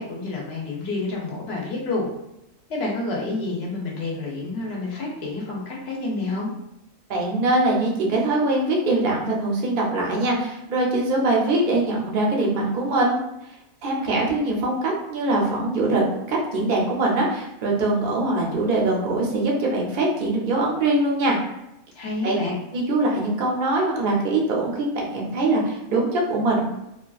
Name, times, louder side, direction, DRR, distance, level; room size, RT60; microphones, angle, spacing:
voice 1, 0.0-2.1 2.7-6.5 22.0-22.6, left 3 dB, 55° left, -3 dB, 0.9 m, -29 dB
voice 2, 7.1-13.2 13.8-21.4 22.2-22.4 22.7-26.7, right 2 dB, 50° right, -2 dB, 0.7 m, -22 dB
2.8 x 2.4 x 2.3 m, 0.88 s
omnidirectional pair, 1.4 m